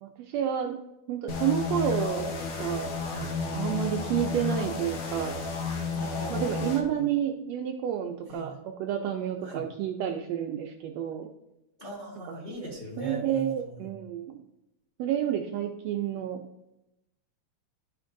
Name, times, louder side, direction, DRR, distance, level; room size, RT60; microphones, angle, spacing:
voice 1, 0.0-0.8 1.1-2.9 3.5-5.4 6.3-11.3 13.0-14.4 15.0-16.4, right 10 dB, 80° right, 3 dB, 1.6 m, -30 dB
sound 1, 1.3-6.8, left 4 dB, 60° left, 1.4 m, -32 dB
voice 2, 3.0-3.3 5.9-7.1 8.3-8.6 9.4-9.6 11.8-13.9, right 1 dB, 30° left, -4 dB, 1.1 m, -40 dB
12.0 x 5.1 x 2.6 m, 0.90 s
omnidirectional pair, 3.4 m